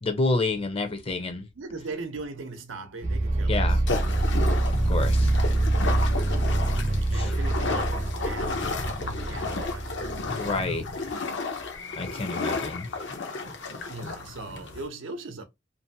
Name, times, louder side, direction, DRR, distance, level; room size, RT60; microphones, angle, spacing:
voice 1, 0.0-1.5 3.5-3.8 4.9-5.3 7.1-7.3 10.3-11.1 12.0-12.9, left 3 dB, 30° left, 0.6 m, -29 dB
voice 2, 1.6-4.3 7.1-10.8 11.5-11.7 13.9-15.4, right 3 dB, 90° right, 0.7 m, -40 dB
sound 1, 3.0-10.9, right 2 dB, 40° right, 0.6 m, -25 dB
sound 2, 3.9-14.9, left 3 dB, 65° left, 0.7 m, -32 dB
2.6 x 2.5 x 2.6 m
head